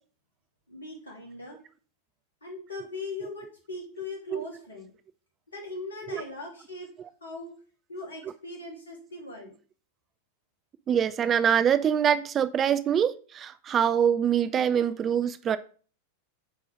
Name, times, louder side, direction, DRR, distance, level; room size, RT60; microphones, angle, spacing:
voice 1, 0.7-1.6 2.4-4.9 5.5-6.9 7.2-7.5 7.9-9.5, left 2 dB, 75° left, 3.1 m, -39 dB
voice 2, 10.9-15.6, right 8 dB, 25° right, 0.5 m, -24 dB
8.0 x 4.6 x 4.8 m
figure-of-eight pair, 90°, 0 cm